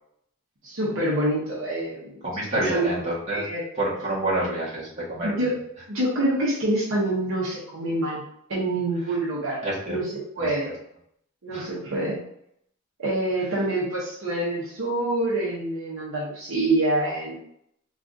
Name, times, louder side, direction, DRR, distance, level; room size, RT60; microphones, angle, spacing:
voice 1, 0.6-2.2 2.6-2.8 3.3-3.6 5.2-5.5 5.9-8.2 8.5-9.6 9.9-10.0 10.4-10.7 11.4-12.2 13.0-17.4, right 1 dB, 65° right, -5 dB, 0.8 m, -26 dB
voice 2, 2.2-3.5 3.7-5.8 9.0-9.2 9.6-10.0 10.4-10.7 11.5-11.7 13.3-13.6, right 1 dB, 35° right, -7 dB, 1.2 m, -29 dB
3.6 x 2.4 x 2.5 m, 0.72 s
head